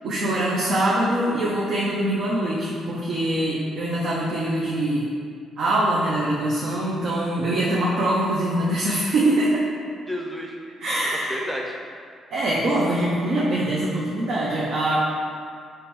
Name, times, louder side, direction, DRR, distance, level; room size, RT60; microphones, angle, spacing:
voice 1, 0.0-5.1 5.6-9.7 10.8-11.4 12.3-15.0, right 1 dB, 70° right, -5 dB, 0.5 m, -23 dB
voice 2, 10.1-10.6 11.3-11.8 14.9-15.0, equal, ahead, -1 dB, 0.5 m, -31 dB
3.5 x 3.0 x 3.0 m, 2.2 s
cardioid pair, 90°, 0 cm